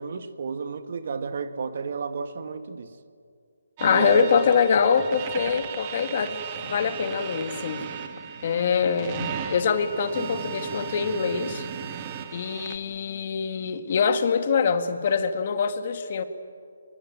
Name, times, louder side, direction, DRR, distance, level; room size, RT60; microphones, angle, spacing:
voice 1, 0.0-2.9 3.8-4.3, right 5 dB, 50° right, 10 dB, 1.7 m, -31 dB
voice 2, 3.8-7.9 8.4-11.7 12.3-16.2, left 6 dB, 40° left, 9 dB, 1.8 m, -24 dB
sound 1, 3.8-12.8, right 8 dB, 25° right, 1.7 m, -36 dB
25.0 x 22.0 x 9.1 m, 2.2 s
figure-of-eight pair, 155°, 0 cm